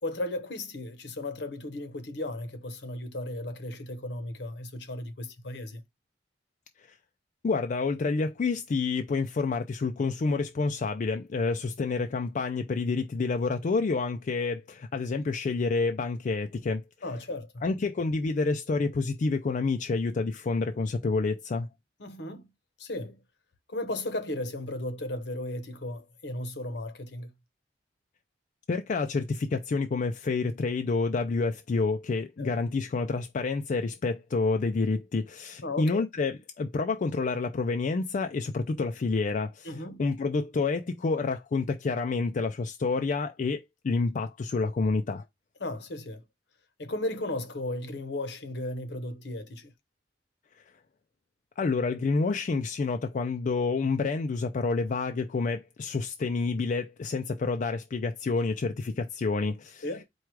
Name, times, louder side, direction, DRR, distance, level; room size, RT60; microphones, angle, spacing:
voice 1, 0.0-5.8 17.0-17.6 22.0-22.4 22.8-23.2 23.7-27.3 32.4-32.5 35.6-36.0 39.6-40.0 45.6-46.2 46.8-49.7 59.8-60.0, left 1 dB, 65° left, 0.9 m, -35 dB
voice 2, 7.4-16.8 17.6-21.7 28.7-45.2 51.6-59.9, left 4 dB, 45° left, 0.4 m, -28 dB
4.6 x 2.4 x 4.5 m
head